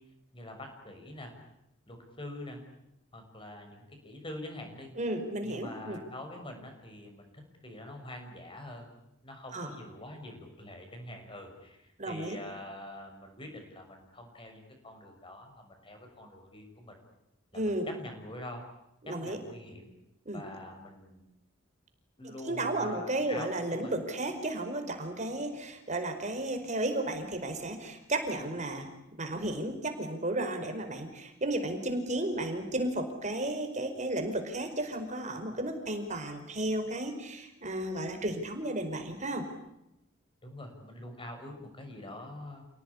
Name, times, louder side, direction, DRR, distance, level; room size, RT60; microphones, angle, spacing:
voice 1, 0.3-1.3 1.9-2.6 3.1-4.9 5.4-7.3 7.6-8.9 9.2-17.0 17.5-18.6 19.0-19.9 20.3-21.2 22.2-23.9 40.4-42.6, left 1 dB, 25° left, 4 dB, 6.5 m, -45 dB
voice 2, 5.0-6.0 9.5-9.7 12.0-12.4 17.5-17.9 19.0-19.4 20.2-20.4 22.2-28.9 29.2-39.4, right 1 dB, 40° right, 6 dB, 5.0 m, -33 dB
29.5 x 18.5 x 9.9 m, 0.84 s
head